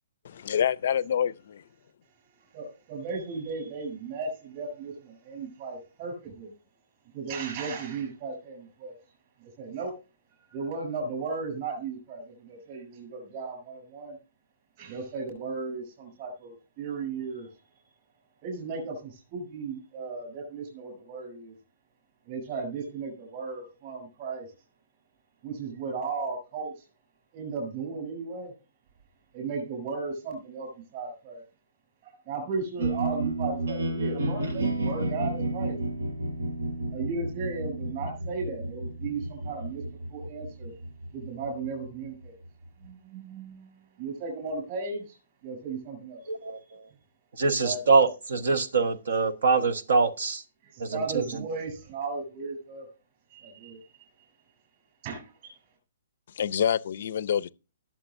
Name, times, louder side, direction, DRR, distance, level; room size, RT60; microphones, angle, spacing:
voice 1, 0.2-1.6 56.3-57.5, left 9 dB, 45° left, 0.5 m, -27 dB
voice 2, 2.5-6.5 7.1-8.9 9.4-9.9 10.3-14.2 14.8-17.5 18.4-21.5 22.3-24.5 25.4-26.8 27.3-28.5 29.3-31.4 32.0-35.8 36.9-39.8 40.1-40.7 41.1-42.4 42.8-43.7 44.0-45.2 45.4-46.3 47.6-47.8 50.9-52.9 53.3-53.8 55.0-55.5, right 4 dB, 25° right, 7.5 m, -35 dB
sound 1, 32.8-42.9, right 2 dB, 85° right, 4.9 m, -32 dB
voice 3, 46.3-46.6 47.4-50.4 50.8-51.4, right 4 dB, 55° right, 1.2 m, -24 dB
20.0 x 7.4 x 2.6 m
hypercardioid pair, 180°, 0 cm